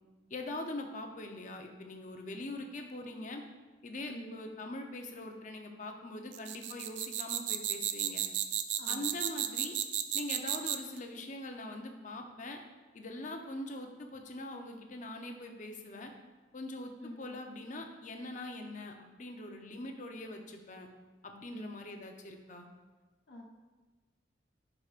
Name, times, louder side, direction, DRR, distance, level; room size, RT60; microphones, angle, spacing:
voice 1, 0.3-3.4 3.8-8.2 8.9-9.8 10.1-12.6 12.9-16.1 16.5-20.9 21.2-22.7, left 2 dB, 45° left, 4 dB, 0.7 m, -42 dB
voice 2, 4.0-4.4 8.8-9.1 17.0-17.3 21.5-21.9 23.3-23.4, equal, 85° left, -1 dB, 1.1 m, -47 dB
sound 1, 6.3-11.0, right 11 dB, 75° right, 0.4 m, -33 dB
10.5 x 4.9 x 2.5 m, 1.2 s
head